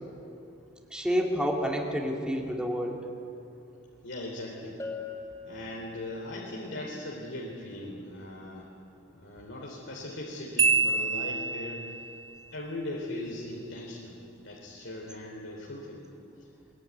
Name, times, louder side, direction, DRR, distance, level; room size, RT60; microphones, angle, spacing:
voice 1, 0.9-3.0, equal, 5° right, 0 dB, 2.6 m, -29 dB
voice 2, 4.0-4.8 5.4-8.7 9.1-12.1 12.5-14.2 14.4-16.1, left 1 dB, 75° left, -3 dB, 3.5 m, -39 dB
Bell, 4.8-6.4, left 3 dB, 15° left, 4.5 m, -41 dB
Marimba xylophone, 10.6-12.0, right 4 dB, 70° right, 2.2 m, -26 dB
22.5 x 22.0 x 9.5 m, 2.7 s
head